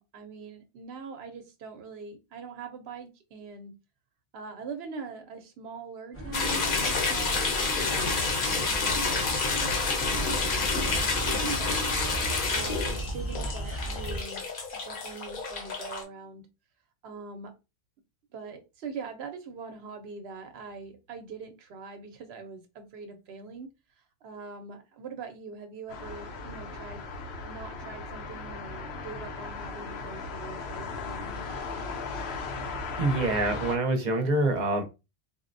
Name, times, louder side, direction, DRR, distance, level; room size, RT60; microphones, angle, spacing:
voice 1, 0.0-3.7 4.3-9.4 9.8-11.8 12.5-14.5 14.8-16.4 17.0-17.5 18.3-27.0 27.4-31.4, right 5 dB, 85° right, 7 dB, 0.9 m, -43 dB
sound 1, 6.1-14.2, right 1 dB, 15° left, 0.6 m, -37 dB
sound 2, 6.3-16.0, left 3 dB, 60° left, 0.8 m, -29 dB
sound 3, 25.9-33.8, left 3 dB, 90° left, 0.9 m, -37 dB
voice 2, 33.0-34.8, right 2 dB, 50° right, 5 dB, 0.7 m, -26 dB
4.0 x 2.1 x 2.5 m, 0.27 s
omnidirectional pair, 1.0 m